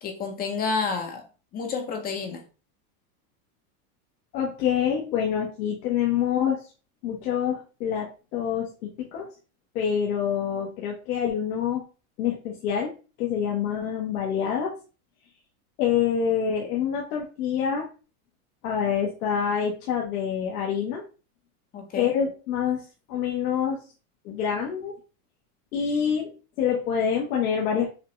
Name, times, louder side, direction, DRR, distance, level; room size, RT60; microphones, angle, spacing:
voice 1, 0.0-1.2 1.5-2.4 21.7-22.1, left 4 dB, 20° left, 4 dB, 0.6 m, -29 dB
voice 2, 4.3-6.6 7.0-9.3 9.7-11.8 12.2-14.7 15.8-17.9 18.6-21.0 21.9-23.8 24.2-24.9 25.7-26.3 26.6-27.9, left 8 dB, 75° left, -2 dB, 1.2 m, -26 dB
5.7 x 2.3 x 3.0 m, 0.34 s
supercardioid pair, 150°, 45 cm